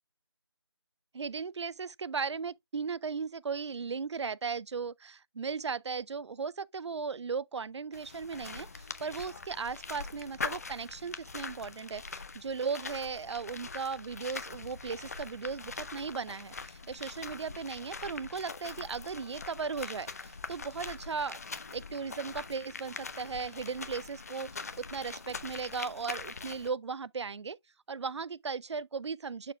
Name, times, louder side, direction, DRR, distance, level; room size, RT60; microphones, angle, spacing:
voice 1, 1.1-27.6 27.9-29.5, right 5 dB, 85° right, 0.4 m, -37 dB
sound 1, 7.9-26.7, left 4 dB, 35° left, 0.5 m, -43 dB
12.0 x 4.4 x 2.2 m
figure-of-eight pair, 165°, 14 cm